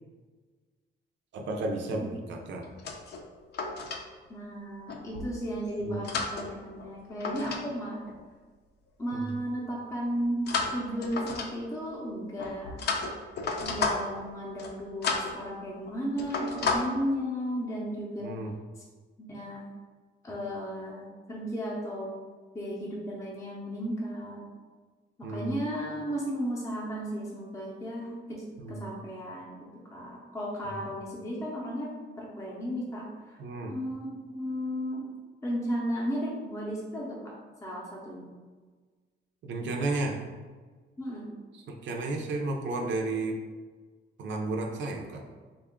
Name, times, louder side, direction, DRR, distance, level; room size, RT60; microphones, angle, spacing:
voice 1, 1.3-2.7 5.8-6.1 9.1-9.2 18.2-18.6 25.2-25.5 28.6-28.8 33.4-33.7 39.4-40.2 41.7-43.4 44.2-45.2, right 2 dB, 75° right, 2 dB, 0.6 m, -32 dB
sound 1, 2.6-4.0 4.9-5.3 5.8-7.6 7.9-8.2 10.5-11.8 12.4-14.2 14.5-14.8 15.0-15.4 15.7-16.8, left 4 dB, 60° left, 0.5 m, -32 dB
voice 2, 4.3-8.0 9.0-12.7 13.6-18.3 19.2-19.6 20.2-22.1 22.5-24.5 25.2-28.4 28.7-29.6 29.9-31.9 32.2-33.4 33.7-35.1 35.4-37.3 37.6-38.2 41.0-41.3, equal, 15° left, -5 dB, 0.6 m, -34 dB
3.6 x 2.3 x 3.5 m, 1.4 s
cardioid pair, 160°, 19 cm